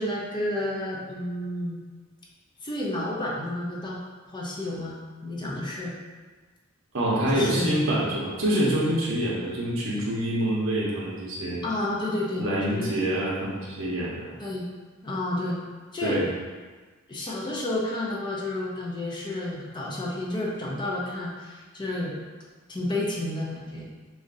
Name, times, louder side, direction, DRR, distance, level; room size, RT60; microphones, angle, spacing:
voice 1, 0.0-1.8 2.6-4.0 4.3-4.9 5.2-5.9 7.3-7.8 11.6-12.9 14.4-14.6 15.0-15.6 15.9-16.2 17.1-22.1 22.7-23.8, left 1 dB, 20° left, -4 dB, 0.7 m, -30 dB
voice 2, 6.9-11.6 12.4-14.3 16.0-16.3, right 1 dB, 70° right, -5 dB, 1.1 m, -26 dB
6.4 x 2.6 x 2.7 m, 1.4 s
head